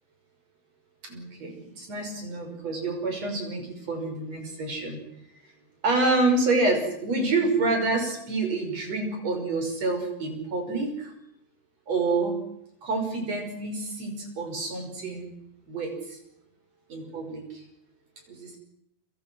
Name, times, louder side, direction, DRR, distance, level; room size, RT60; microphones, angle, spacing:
voice 1, 1.1-5.0 5.8-11.1 11.9-12.3 12.8-15.3 15.7-16.2 16.9-17.6 18.3-18.6, right 3 dB, 50° right, 4 dB, 7.0 m, -28 dB
29.5 x 25.5 x 6.3 m, 0.77 s
omnidirectional pair, 3.7 m